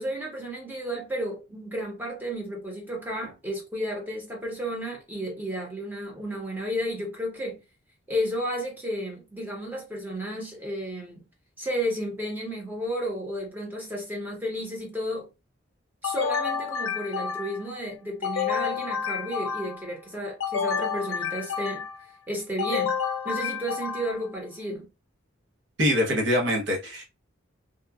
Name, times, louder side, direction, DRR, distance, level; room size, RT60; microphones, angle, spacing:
voice 1, 0.0-7.6 8.1-11.2 11.6-15.3 16.0-21.8 22.3-23.0 23.2-24.9, equal, 10° right, 0.8 m, -32 dB
sound 1, 16.0-17.7 18.2-19.9 20.4-22.0 22.6-24.3, left 7 dB, 85° left, 0.5 m, -29 dB
voice 2, 25.8-27.0, equal, 60° right, 0.9 m, -24 dB
2.8 x 2.2 x 2.3 m
head